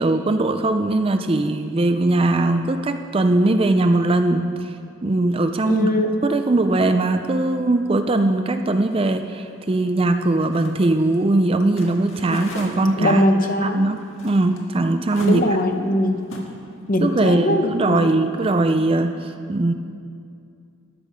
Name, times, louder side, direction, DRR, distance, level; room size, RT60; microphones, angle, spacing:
voice 1, 0.0-4.7 5.0-6.0 6.2-14.0 14.2-15.4 17.0-19.7, right 2 dB, 25° right, 7 dB, 0.4 m, -20 dB
voice 2, 5.7-6.1 12.3-12.4 13.0-13.9 15.2-16.2 16.9-18.1, left 1 dB, 40° left, 5 dB, 0.8 m, -21 dB
sound 1, 8.9-12.7 13.0-16.6 17.0-17.8, left 2 dB, 65° left, 1.7 m, -40 dB
13.0 x 10.5 x 4.9 m, 2.4 s
head